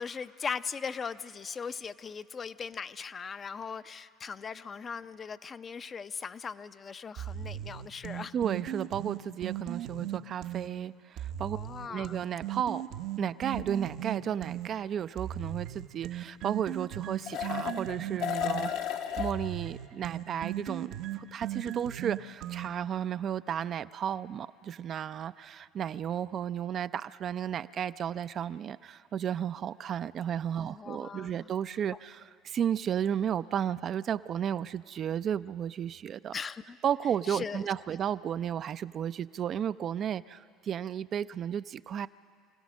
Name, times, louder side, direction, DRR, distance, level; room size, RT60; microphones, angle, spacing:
voice 1, 0.0-8.3 11.5-12.2 30.6-31.5 36.3-36.8 37.3-37.7, left 6 dB, 35° left, 13 dB, 0.6 m, -39 dB
sound 1, 7.2-10.7 11.2-14.7 15.2-23.0, right 12 dB, 65° right, 0.8 m, -38 dB
voice 2, 8.3-11.6 11.9-12.8 13.2-18.7 19.1-36.3 36.8-42.1, right 9 dB, 45° right, 14 dB, 0.4 m, -33 dB
sound 2, 13.5-13.6 17.3-17.9 18.2-19.3, left 9 dB, 70° left, 1.2 m, -33 dB
25.5 x 16.5 x 6.3 m, 2.3 s
hypercardioid pair, 70°, 0 cm